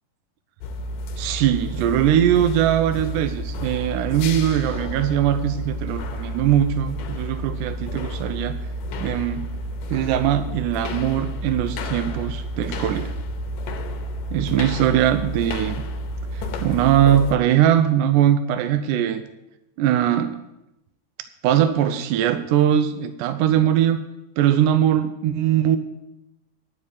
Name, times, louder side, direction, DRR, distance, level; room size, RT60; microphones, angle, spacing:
sound 1, 0.6-17.4, equal, 85° left, 2.5 m, -30 dB
voice 1, 1.2-8.6 9.0-9.5 9.9-13.1 14.3-15.8 16.3-19.2 19.8-20.4 21.4-24.0 24.4-25.8, right 10 dB, 80° right, 9 dB, 2.0 m, -21 dB
11.5 x 5.3 x 8.3 m, 0.92 s
omnidirectional pair, 3.7 m